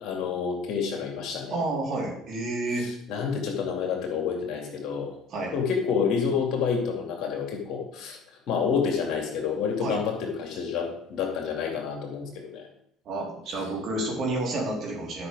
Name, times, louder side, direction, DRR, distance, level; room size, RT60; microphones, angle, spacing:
voice 1, 0.0-1.6 2.8-5.1 5.5-8.2 8.5-12.7, left 6 dB, 55° left, 1 dB, 2.7 m, -28 dB
voice 2, 1.5-2.9 5.3-5.5 9.8-10.0 13.0-15.3, right 2 dB, 50° right, -2 dB, 4.0 m, -30 dB
11.5 x 5.9 x 5.0 m, 0.72 s
figure-of-eight pair, 60°, 0 cm